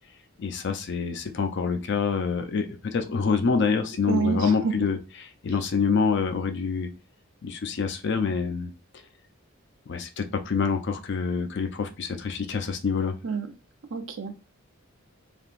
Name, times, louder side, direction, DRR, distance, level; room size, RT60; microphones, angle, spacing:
voice 1, 0.4-6.9 7.4-8.7 9.9-13.2, left 5 dB, 60° left, 6 dB, 0.5 m, -26 dB
voice 2, 4.1-4.7 13.2-13.5 13.9-14.4, right 5 dB, 70° right, 6 dB, 0.6 m, -27 dB
3.4 x 2.7 x 2.5 m, 0.30 s
head